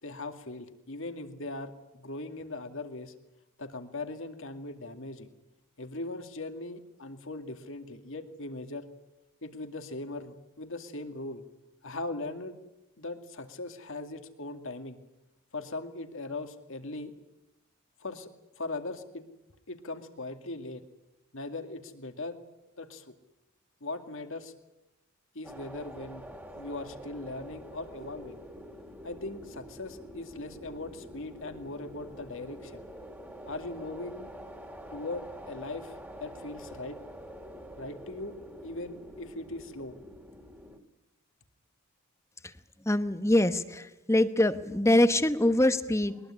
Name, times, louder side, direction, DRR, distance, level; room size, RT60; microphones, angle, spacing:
voice 1, 0.0-3.1 3.6-5.3 5.8-8.9 9.4-11.4 11.8-12.6 13.0-15.0 15.5-17.1 18.0-18.3 18.6-19.3 19.7-20.8 21.3-22.4 22.8-23.1 23.8-24.5 25.3-26.2 26.5-28.4 29.0-32.8 33.5-34.3 34.9-37.0 37.8-38.4 38.6-40.0, left 2 dB, 65° left, 7 dB, 2.4 m, -39 dB
sound 1, 25.4-40.8, equal, 10° right, 2.5 m, -46 dB
voice 2, 42.8-46.2, left 1 dB, 15° left, 11 dB, 1.1 m, -24 dB
22.0 x 21.0 x 10.0 m, 0.95 s
head